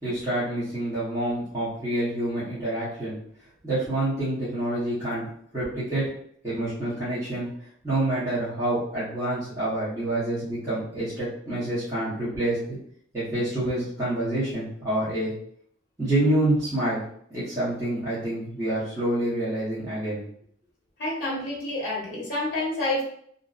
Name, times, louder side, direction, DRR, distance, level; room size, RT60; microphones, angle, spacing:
voice 1, 0.0-3.2 3.6-6.0 6.4-7.5 7.8-12.6 13.1-15.3 16.0-17.0 17.3-20.2, right 1 dB, 15° right, -13 dB, 0.9 m, -27 dB
voice 2, 21.0-23.0, left 1 dB, 50° left, -4 dB, 0.8 m, -28 dB
2.6 x 2.1 x 2.4 m, 0.64 s
head